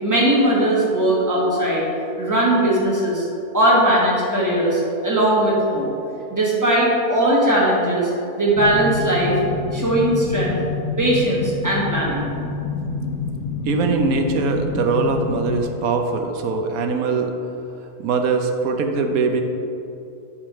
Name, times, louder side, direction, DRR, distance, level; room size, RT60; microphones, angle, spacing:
voice 1, 0.0-1.9 2.2-3.3 3.5-5.9 6.3-8.1 8.4-9.4 9.7-10.6 11.0-12.3, right 1 dB, 10° right, -5 dB, 1.3 m, -19 dB
sound 1, 8.6-15.6, left 4 dB, 65° left, 1.0 m, -27 dB
voice 2, 13.7-17.3 18.0-19.4, right 4 dB, 65° right, 4 dB, 1.1 m, -21 dB
9.8 x 3.6 x 4.7 m, 2.8 s
omnidirectional pair, 1.7 m